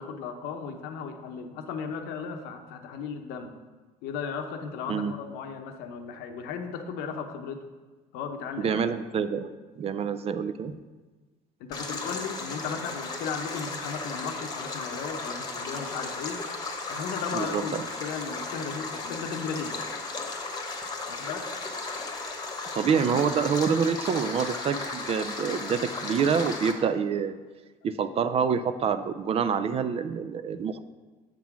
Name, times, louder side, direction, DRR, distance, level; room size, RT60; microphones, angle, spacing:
voice 1, 0.0-3.5 4.0-7.6 8.1-8.8 11.6-16.4 16.9-19.9 21.1-21.4, left 6 dB, 80° left, 6 dB, 0.8 m, -36 dB
voice 2, 8.6-9.5 9.8-10.8 17.3-17.8 22.8-27.4 27.8-30.8, right 6 dB, 40° right, 11 dB, 0.4 m, -27 dB
Stream, 11.7-26.7, left 3 dB, 25° left, 1.1 m, -35 dB
7.4 x 3.7 x 5.9 m, 1.3 s
cardioid pair, 100°, 16 cm